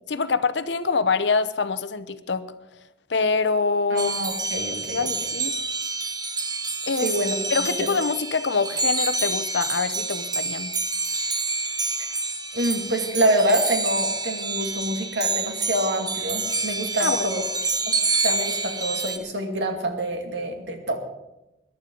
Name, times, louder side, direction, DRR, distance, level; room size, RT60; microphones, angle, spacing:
voice 1, 0.1-2.5 3.1-4.2 4.9-5.6 6.9-7.2 7.5-10.7 17.0-17.4, left 4 dB, 75° left, 13 dB, 0.8 m, -25 dB
voice 2, 3.9-5.1 7.0-7.4 7.8-7.9 12.5-17.4 18.2-21.0, right 1 dB, 75° right, 3 dB, 2.3 m, -26 dB
sound 1, 4.0-19.2, right 3 dB, 20° right, 1.1 m, -28 dB
22.0 x 11.5 x 3.9 m, 0.96 s
head